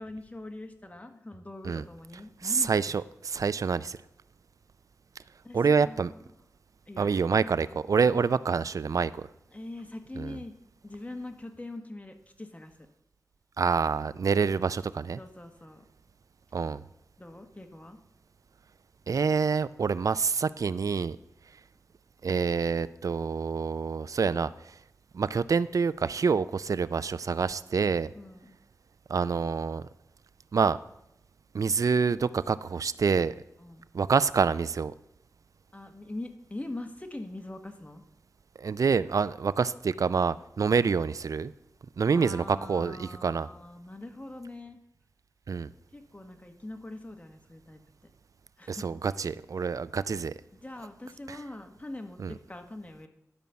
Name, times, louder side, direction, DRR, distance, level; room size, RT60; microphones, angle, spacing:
voice 1, 0.0-3.0 5.4-6.3 6.9-7.4 9.5-10.5 10.8-12.7 15.2-15.8 17.2-18.0 28.1-28.6 33.6-33.8 35.7-38.0 42.1-44.8 45.9-47.8 48.6-48.9 50.5-53.1, left 2 dB, 25° left, 5 dB, 1.4 m, -43 dB
voice 2, 2.4-4.0 5.5-6.1 7.0-9.1 10.2-10.3 13.6-15.2 16.5-16.8 19.1-21.2 22.2-24.5 25.1-28.1 29.1-29.8 30.5-30.8 31.5-33.3 33.9-34.9 38.6-41.5 42.0-43.5 45.5-45.7 48.7-50.3 51.3-51.4 52.2-52.3, right 5 dB, 70° right, 17 dB, 0.4 m, -27 dB
11.0 x 5.1 x 7.0 m, 0.81 s
cardioid pair, 50°, 6 cm